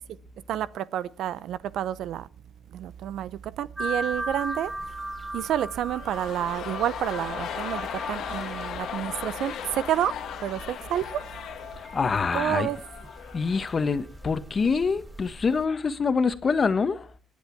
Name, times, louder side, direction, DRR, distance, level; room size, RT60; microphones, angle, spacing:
voice 1, 0.5-2.3 2.7-4.7 5.3-10.2 10.4-11.3 12.3-12.8, right 11 dB, 80° right, 0.6 m, -29 dB
sound 1, 3.8-15.7, right 1 dB, 20° right, 3.1 m, -39 dB
sound 2, 5.9-14.0 14.2-14.3, left 9 dB, 75° left, 1.4 m, -37 dB
voice 2, 11.8-12.7 13.3-17.1, left 5 dB, 40° left, 1.3 m, -25 dB
25.5 x 9.3 x 4.6 m
cardioid pair, 90°, 0 cm